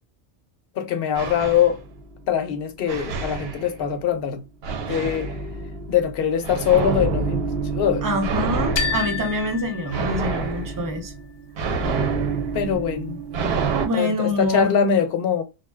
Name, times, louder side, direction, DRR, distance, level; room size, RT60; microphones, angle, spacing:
voice 1, 0.8-1.8 2.3-4.4 4.9-5.3 5.9-8.1 12.5-13.2 13.9-15.4, left 8 dB, 60° left, 0.7 m, -22 dB
sound 1, 1.1-2.3 2.9-4.1 4.6-13.9, right 4 dB, 65° right, 0.7 m, -28 dB
voice 2, 8.0-11.1 13.8-14.8, left 1 dB, 30° right, 0.4 m, -26 dB
sound 2, 8.8-10.7, left 6 dB, 85° left, 1.0 m, -29 dB
2.6 x 2.2 x 2.2 m
omnidirectional pair, 1.2 m